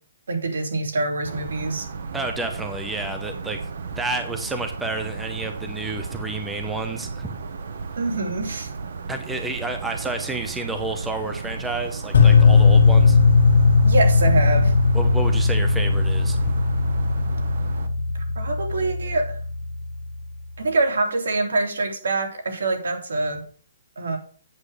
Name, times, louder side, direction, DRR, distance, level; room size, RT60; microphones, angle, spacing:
voice 1, 0.3-1.9 7.9-8.7 13.8-14.7 18.1-19.4 20.6-23.4 24.0-24.2, right 2 dB, 85° right, 2 dB, 3.3 m, -25 dB
sound 1, 1.2-17.9, right 4 dB, 50° right, 1.1 m, -34 dB
voice 2, 2.1-3.6 3.9-7.3 9.1-13.2 14.9-16.5, right 2 dB, 5° right, 5 dB, 0.7 m, -30 dB
sound 2, 12.1-20.3, left 4 dB, 60° left, 1.6 m, -18 dB
8.4 x 8.3 x 4.9 m, 0.44 s
hypercardioid pair, 180°, 0 cm